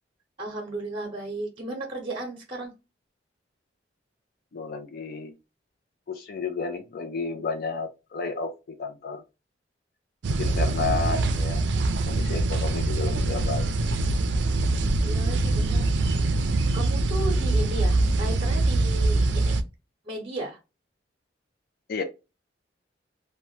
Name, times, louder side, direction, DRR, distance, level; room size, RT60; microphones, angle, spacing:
voice 1, 0.4-2.7 10.8-11.3 15.0-16.3 16.7-19.6 20.0-20.6, right 1 dB, 30° right, 0.8 m, -35 dB
voice 2, 4.5-5.3 6.1-8.5 8.8-9.2 10.4-11.6 12.1-13.7 21.9-22.0, left 4 dB, 55° left, 0.4 m, -31 dB
sound 1, 10.2-19.6, right 2 dB, 70° right, 0.4 m, -24 dB
2.8 x 2.1 x 3.1 m
head